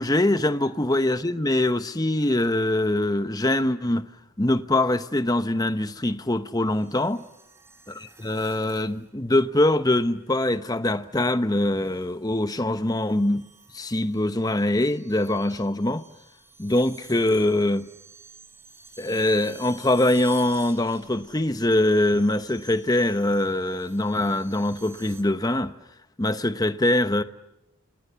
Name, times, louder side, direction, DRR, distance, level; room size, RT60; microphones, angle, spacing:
voice 1, 0.0-4.1 4.4-7.3 8.2-13.5 13.7-16.0 16.6-17.9 19.0-25.7 26.2-27.2, left 1 dB, 15° left, 0.9 m, -23 dB
sound 1, 6.7-9.1 10.4-10.8 11.7-25.2, right 3 dB, 10° right, 4.2 m, -50 dB
29.0 x 27.0 x 6.9 m
head